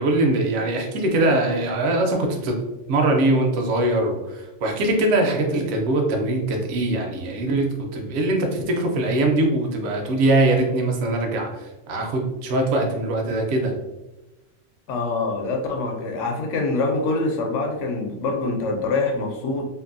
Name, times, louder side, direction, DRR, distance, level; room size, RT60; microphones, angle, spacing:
voice 1, 0.0-2.6 2.9-13.7, right 2 dB, 70° right, 2 dB, 0.9 m, -22 dB
voice 2, 14.9-19.6, left 3 dB, 75° left, 2 dB, 0.9 m, -25 dB
2.6 x 2.5 x 2.5 m, 1.0 s
omnidirectional pair, 1.3 m